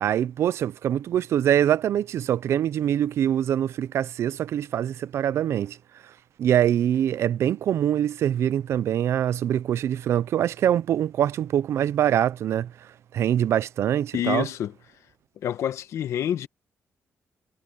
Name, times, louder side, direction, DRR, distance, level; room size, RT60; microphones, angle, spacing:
voice 1, 0.0-5.8 6.4-12.7 13.1-14.5, right 10 dB, 65° right, 0.5 m, -24 dB
voice 2, 14.1-14.7 15.4-16.5, left 11 dB, 75° left, 1.4 m, -27 dB
cardioid pair, 150°, 5 cm